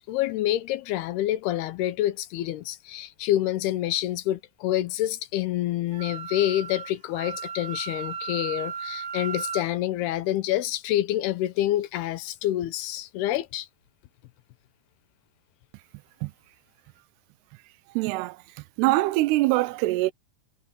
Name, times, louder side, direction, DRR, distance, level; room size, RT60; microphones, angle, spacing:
voice 1, 0.1-13.7, left 13 dB, 80° left, 2.7 m, -27 dB
Wind instrument woodwind instrument, 5.9-9.6, right 6 dB, 55° right, 5.0 m, -35 dB
voice 2, 18.0-18.4 18.8-20.1, right 19 dB, 80° right, 2.7 m, -23 dB
omnidirectional pair, 4.9 m